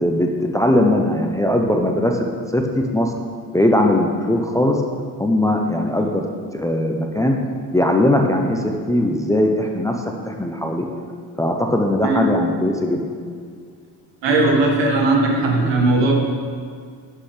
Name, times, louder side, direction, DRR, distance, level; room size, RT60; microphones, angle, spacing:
voice 1, 0.0-2.2 2.5-3.1 3.5-4.8 5.2-6.2 6.5-7.4 7.7-10.0 10.3-10.8 11.4-13.0, left 1 dB, 5° left, 2 dB, 0.6 m, -19 dB
voice 2, 14.2-16.1, right 2 dB, 75° right, 0 dB, 1.8 m, -17 dB
11.5 x 6.5 x 3.3 m, 2.1 s
cardioid pair, 100°, 44 cm